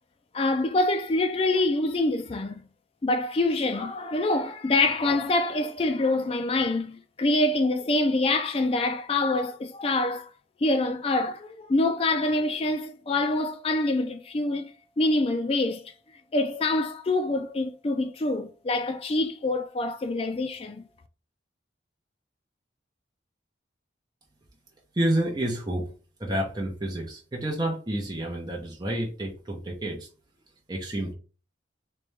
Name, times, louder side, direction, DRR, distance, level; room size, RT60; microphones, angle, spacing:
voice 1, 0.3-2.6 3.0-10.3 10.6-14.7 15.0-15.8 16.3-20.8, left 2 dB, 30° left, 0.3 m, -25 dB
voice 2, 25.0-25.9 26.2-30.1 30.7-31.1, right 1 dB, 20° right, 0.8 m, -29 dB
3.3 x 3.2 x 3.3 m
head